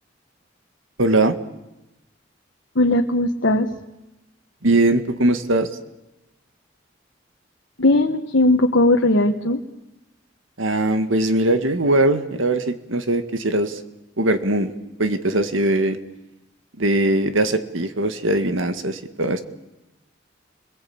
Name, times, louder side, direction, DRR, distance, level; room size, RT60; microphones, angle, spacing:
voice 1, 1.0-1.4 4.6-5.7 10.6-13.8 14.2-14.7 15.0-16.0 16.8-19.4, right 2 dB, 90° right, 9 dB, 2.0 m, -20 dB
voice 2, 2.7-3.7 7.8-9.6, left 1 dB, 75° left, 2 dB, 1.5 m, -18 dB
29.5 x 22.0 x 8.8 m, 0.99 s
head